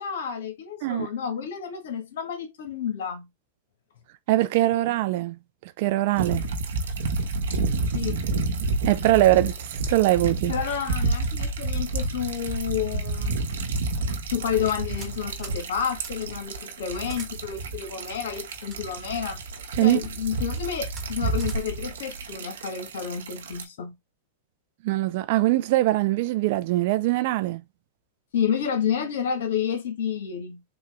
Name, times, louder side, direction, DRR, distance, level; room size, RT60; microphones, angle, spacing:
voice 1, 0.0-3.3 7.9-8.2 10.5-13.4 14.3-19.4 19.8-24.0 28.3-30.6, left 8 dB, 75° left, 1.2 m, -30 dB
voice 2, 4.3-5.4 5.6-6.4 8.8-10.5 19.7-20.0 24.8-27.6, right 16 dB, 60° right, 0.4 m, -22 dB
sound 1, 6.2-23.6, right 3 dB, 80° right, 1.0 m, -30 dB
sound 2, 14.6-15.1 15.4-15.6 16.0-16.1 17.0-17.3 18.1-18.8 19.5-20.0 20.5-20.6 20.9-21.1 21.4-21.6, right 5 dB, 25° right, 1.2 m, -44 dB
3.9 x 2.3 x 3.1 m
hypercardioid pair, 125°, 0 cm